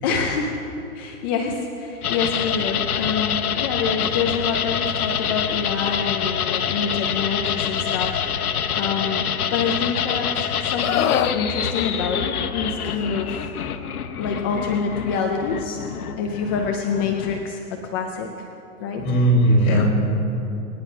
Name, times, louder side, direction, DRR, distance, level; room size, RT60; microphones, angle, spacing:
voice 1, 0.0-13.5 14.2-15.9 16.2-18.5 18.8-19.0, left 5 dB, 15° left, 2 dB, 0.5 m, -27 dB
sound 1, 2.0-17.6, left 8 dB, 85° left, 1.2 m, -26 dB
Screaming, 10.8-11.4 12.9-13.1, left 11 dB, 65° left, 0.8 m, -23 dB
voice 2, 18.8-19.9, right 1 dB, 35° left, -2 dB, 4.9 m, -18 dB
23.5 x 10.0 x 5.9 m, 2.8 s
hypercardioid pair, 155°, 43 cm